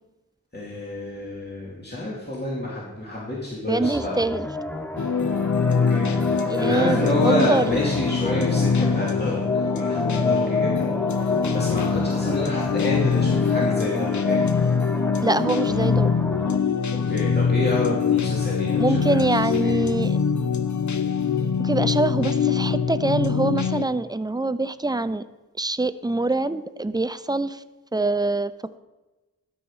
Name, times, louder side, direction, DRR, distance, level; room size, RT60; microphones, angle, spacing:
voice 1, 0.5-4.2 5.7-6.2 6.6-14.5 16.9-19.2 19.5-19.8, left 1 dB, 30° left, -6 dB, 2.3 m, -29 dB
voice 2, 3.7-4.5 6.5-7.7 15.2-16.1 18.8-20.2 21.6-25.3 25.6-27.6 27.9-28.5, right 2 dB, 10° right, 13 dB, 0.4 m, -24 dB
sound 1, 3.8-16.6, left 2 dB, 5° left, 0.8 m, -30 dB
sound 2, 5.0-23.9, left 6 dB, 55° left, 0.6 m, -23 dB
12.5 x 5.6 x 4.7 m, 1.1 s
wide cardioid pair, 45°, 34 cm